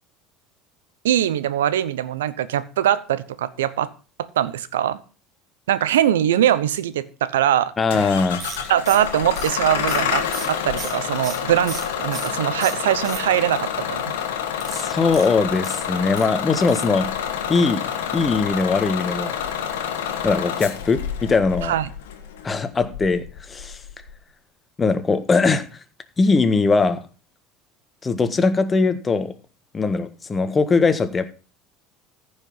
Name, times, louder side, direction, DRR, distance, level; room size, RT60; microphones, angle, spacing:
voice 1, 1.0-3.9 4.2-5.0 5.7-7.7 8.7-14.1 21.6-21.9, right 11 dB, 80° right, 0.8 m, -22 dB
voice 2, 7.8-8.4 14.7-17.1 17.5-17.8 18.1-19.3 20.2-21.7 22.4-23.8 24.8-25.6 26.2-27.0 28.0-29.3 29.7-31.2, left 4 dB, 25° left, 1.5 m, -20 dB
Bus / Engine starting, 7.9-24.1, left 8 dB, 80° left, 1.6 m, -28 dB
sound 1, 8.4-12.4 12.6-13.6 14.5-16.3 16.7-17.0 17.3-17.4 17.6-17.7, right 6 dB, 45° right, 2.0 m, -37 dB
14.5 x 5.5 x 5.5 m
hypercardioid pair, 75°, 0 cm